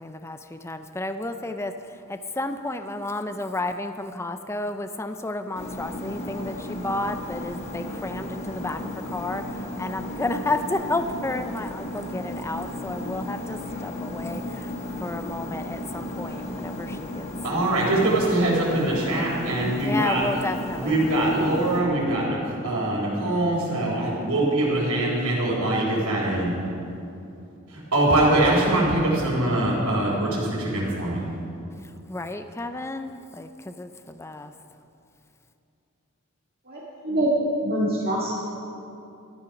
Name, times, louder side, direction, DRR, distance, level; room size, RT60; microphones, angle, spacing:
voice 1, 0.0-14.7 15.0-17.3 17.8-18.1 19.8-21.3 32.1-34.5, left 2 dB, 10° left, 8 dB, 0.5 m, -32 dB
sound 1, 5.5-21.8, left 1 dB, 30° left, 1.3 m, -34 dB
voice 2, 17.4-20.2 20.8-26.6 27.7-31.2, right 1 dB, 90° right, -10 dB, 3.5 m, -23 dB
voice 3, 36.7-37.3 37.6-38.4, equal, 45° right, -6 dB, 2.0 m, -25 dB
13.5 x 12.0 x 5.9 m, 2.7 s
head